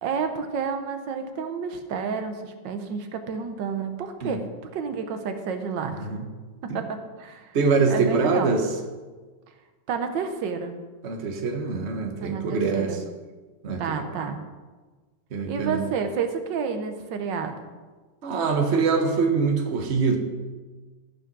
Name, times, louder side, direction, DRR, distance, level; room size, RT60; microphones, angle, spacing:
voice 1, 0.0-6.1 6.6-7.6 7.9-8.5 9.9-10.7 12.2-13.0 13.8-14.4 15.5-17.6, right 6 dB, 85° right, 7 dB, 1.6 m, -30 dB
voice 2, 5.9-6.2 6.7-6.8 7.5-8.7 11.0-13.0 13.6-14.0 15.3-15.8 18.2-20.2, right 4 dB, 40° right, 4 dB, 1.3 m, -24 dB
13.5 x 5.4 x 6.0 m, 1.3 s
omnidirectional pair, 1.9 m